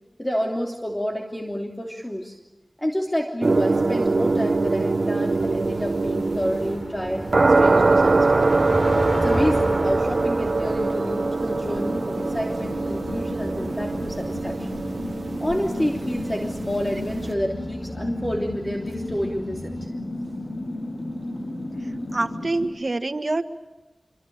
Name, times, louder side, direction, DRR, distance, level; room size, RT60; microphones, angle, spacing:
voice 1, 0.2-2.3 2.8-8.6 9.1-14.8 15.4-19.9, equal, 20° left, 1 dB, 3.1 m, -29 dB
sound 1, 3.4-17.3, right 3 dB, 75° right, 1.1 m, -23 dB
sound 2, 5.4-19.9, left 1 dB, 50° left, 4.6 m, -36 dB
sound 3, 11.5-22.7, left 1 dB, 80° left, 7.5 m, -34 dB
voice 2, 22.1-23.4, right 2 dB, 60° right, 7 dB, 1.6 m, -25 dB
26.5 x 24.5 x 8.8 m, 1.1 s
wide cardioid pair, 45°, 0 cm